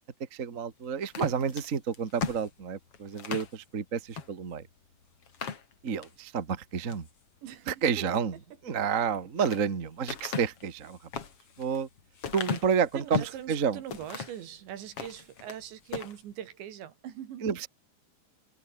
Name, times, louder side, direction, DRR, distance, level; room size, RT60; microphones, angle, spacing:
voice 1, 0.3-4.6 5.8-7.1 7.7-8.4 8.6-11.0 11.6-11.9 12.3-13.8 17.4-17.7, right 6 dB, 65° right, 0.8 m, -30 dB
sound 1, 1.0-3.5 4.1-4.3 4.7-4.8 5.2-6.2 6.6-7.1 8.9-9.6 10.1-13.4 13.9-14.4 14.8-15.6 15.9-16.2, left 6 dB, 40° left, 2.9 m, -37 dB
voice 2, 7.4-8.1 12.9-17.5, right 10 dB, 80° right, 4.6 m, -42 dB
omnidirectional pair, 5.1 m